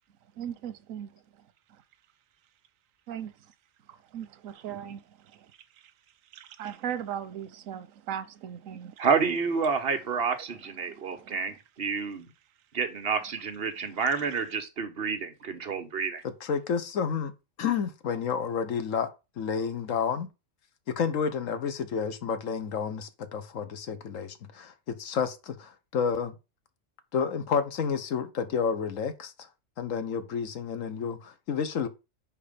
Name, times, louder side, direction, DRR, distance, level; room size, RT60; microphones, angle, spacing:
voice 1, 0.4-1.2 3.1-3.3 3.9-5.5 5.8-5.9 6.3-9.0 10.3-11.6 13.8-14.3, right 9 dB, 90° right, 1.1 m, -39 dB
voice 2, 9.0-12.3 12.7-16.2, right 5 dB, 50° right, 1.1 m, -29 dB
voice 3, 16.2-17.3 17.6-19.1 19.4-20.3 20.9-26.4 27.1-29.5 29.8-31.9, left 6 dB, 85° left, 1.3 m, -30 dB
5.1 x 4.8 x 5.0 m
omnidirectional pair, 1.3 m